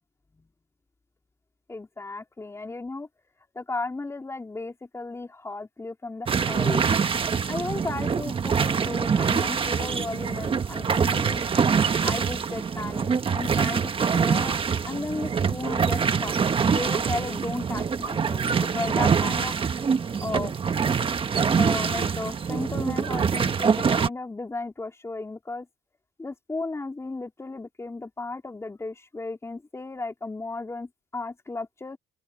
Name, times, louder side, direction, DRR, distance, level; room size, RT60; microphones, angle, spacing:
voice 1, 1.7-3.1 3.5-6.8 7.5-11.4 12.0-14.6 14.8-16.3 16.7-19.5 20.2-20.6 21.6-25.7 26.2-32.0, left 3 dB, 15° left, 4.0 m, -34 dB
sound 1, 6.3-24.1, right 6 dB, 30° right, 1.4 m, -24 dB
open air
cardioid pair, 110°, 17 cm